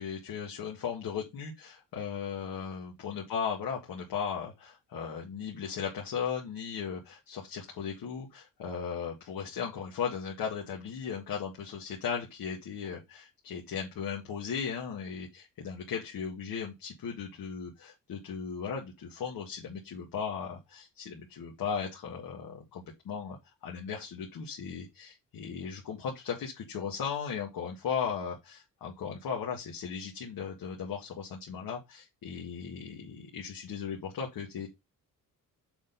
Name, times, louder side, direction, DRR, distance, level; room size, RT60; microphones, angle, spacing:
voice 1, 0.0-23.4 23.6-34.7, left 7 dB, 80° left, -1 dB, 1.9 m, -37 dB
7.1 x 4.2 x 5.3 m, 0.22 s
cardioid pair, 135°, 35 cm